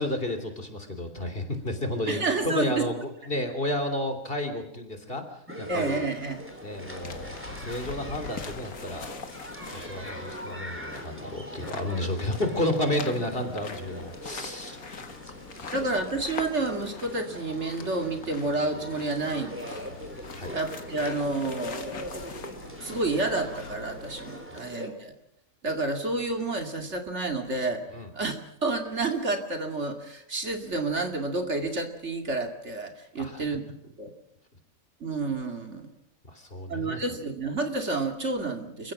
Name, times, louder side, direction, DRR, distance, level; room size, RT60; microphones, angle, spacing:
voice 1, 0.0-2.2 2.5-5.2 5.6-6.1 6.6-9.1 9.7-15.3 15.6-15.8 20.4-20.6 24.5-24.7 27.9-28.1 33.2-33.4 36.3-37.0, left 1 dB, 40° left, 7 dB, 3.4 m, -31 dB
voice 2, 2.1-2.8 5.7-6.4 15.7-19.8 20.5-22.4 22.8-25.1 25.6-34.1 35.0-35.9 36.7-38.9, right 3 dB, 50° right, 5 dB, 2.6 m, -30 dB
sound 1, 5.5-24.9, equal, 10° right, 3.6 m, -42 dB
sound 2, 6.3-24.6, left 5 dB, 90° left, 2.1 m, -43 dB
28.0 x 16.0 x 7.5 m, 0.77 s
omnidirectional pair, 1.5 m